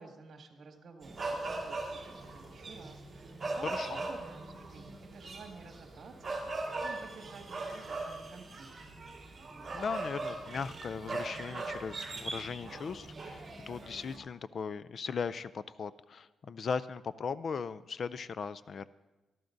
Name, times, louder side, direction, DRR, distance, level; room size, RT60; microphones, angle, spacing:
voice 1, 0.0-6.1 6.5-8.7, right 4 dB, 50° right, 2 dB, 2.0 m, -52 dB
sound 1, 1.0-14.2, right 2 dB, 25° right, 2.6 m, -40 dB
voice 2, 3.6-4.0 9.7-18.9, left 5 dB, 45° left, 16 dB, 0.3 m, -38 dB
21.5 x 14.0 x 2.6 m, 1.1 s
cardioid pair, 140°, 0 cm